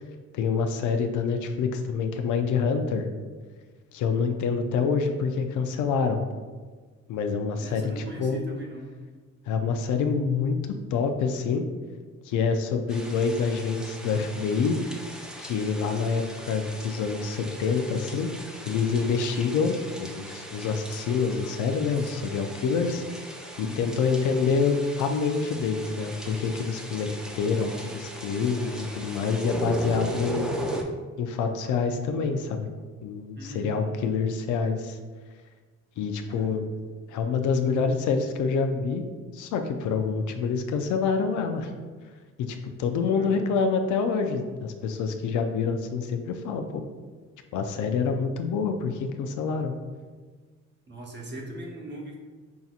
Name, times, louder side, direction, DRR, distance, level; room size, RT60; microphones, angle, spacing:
voice 1, 0.3-3.1 3.9-6.2 7.1-8.4 9.5-10.6 10.9-11.6 12.3-14.8 15.4-18.3 18.6-23.0 23.6-27.1 27.3-30.5 31.2-32.7 33.0-35.0 36.0-36.6 37.1-39.0 39.3-41.7 42.4-46.8 47.5-49.7, left 5 dB, 80° left, 6 dB, 0.5 m, -26 dB
voice 2, 7.6-8.9 23.6-24.0 33.4-33.9 36.3-36.7 43.1-43.6 50.9-52.2, right 1 dB, 35° right, -1 dB, 1.0 m, -40 dB
sound 1, 12.9-30.8, right 1 dB, ahead, 0.4 m, -38 dB
5.7 x 2.7 x 2.4 m, 1.4 s
cardioid pair, 90°, 30 cm